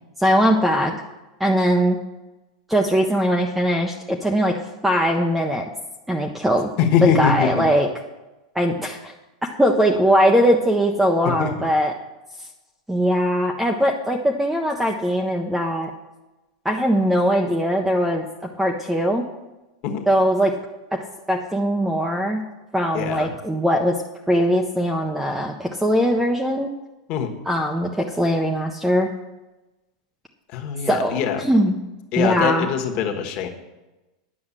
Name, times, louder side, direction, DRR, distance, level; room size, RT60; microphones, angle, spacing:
voice 1, 0.2-1.0 1.4-2.0 2.7-4.6 4.8-5.6 6.1-6.7 7.0-7.9 8.6-9.1 9.6-11.9 12.9-15.9 16.6-18.3 18.6-19.2 20.1-20.5 20.9-21.0 21.3-22.4 22.7-24.0 24.3-26.7 27.5-29.1 30.9-31.8 32.2-32.7, equal, 5° right, 2 dB, 0.5 m, -20 dB
voice 2, 6.8-7.6 11.2-11.7 19.8-20.0 22.9-23.3 27.1-27.3 30.5-31.5 32.1-33.5, left 7 dB, 35° left, 4 dB, 1.2 m, -23 dB
9.7 x 6.1 x 7.3 m, 1.1 s
supercardioid pair, 170°, 3 cm